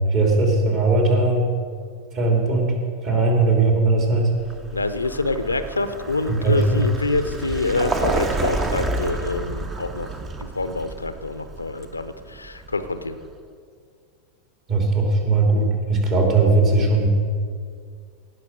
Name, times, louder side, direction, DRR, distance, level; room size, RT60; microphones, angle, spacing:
voice 1, 0.1-1.5 2.1-4.3 6.4-6.8 14.7-17.1, right 3 dB, 35° right, 0 dB, 3.1 m, -19 dB
Vehicle, 4.4-13.2, right 2 dB, 20° right, 1.0 m, -30 dB
voice 2, 4.7-10.1 10.4-13.2, left 3 dB, 80° left, 11 dB, 0.7 m, -26 dB
18.0 x 6.1 x 6.5 m, 2.2 s
figure-of-eight pair, 90°, 0 cm